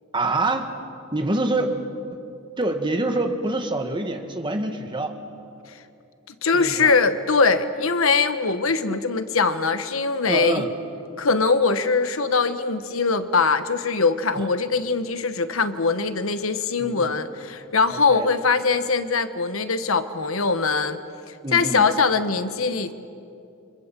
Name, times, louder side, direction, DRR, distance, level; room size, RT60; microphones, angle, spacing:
voice 1, 0.1-0.7 1.1-1.8 2.6-5.2 6.5-7.0 8.9-9.0 10.3-10.7 14.4-14.5 16.8-17.1 17.9-18.3 21.4-21.9, right 2 dB, 25° right, 5 dB, 1.9 m, -26 dB
voice 2, 6.4-10.7 11.2-21.0 21.5-22.9, left 4 dB, 85° left, 10 dB, 1.3 m, -22 dB
29.5 x 25.5 x 7.6 m, 2.6 s
head